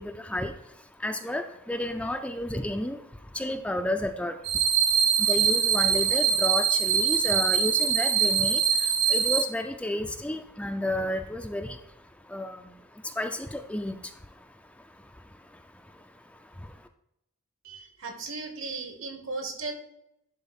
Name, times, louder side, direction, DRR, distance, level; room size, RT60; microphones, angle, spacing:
voice 1, 0.0-16.9, left 1 dB, 5° left, 6 dB, 0.4 m, -33 dB
sound 1, 4.4-9.4, right 7 dB, 85° right, 0.9 m, -23 dB
voice 2, 17.6-19.7, right 3 dB, 65° right, 5 dB, 1.6 m, -36 dB
11.0 x 4.0 x 4.2 m, 0.81 s
head